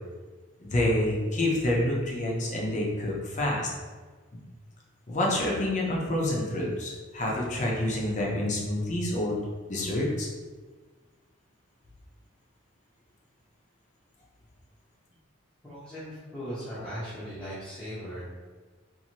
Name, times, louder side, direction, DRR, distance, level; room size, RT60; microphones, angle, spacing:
voice 1, 0.6-3.7 5.1-9.4 9.7-10.3, left 1 dB, 35° left, -2 dB, 0.6 m, -28 dB
voice 2, 15.6-18.4, equal, 5° left, -13 dB, 0.7 m, -38 dB
2.6 x 2.6 x 2.9 m, 1.4 s
head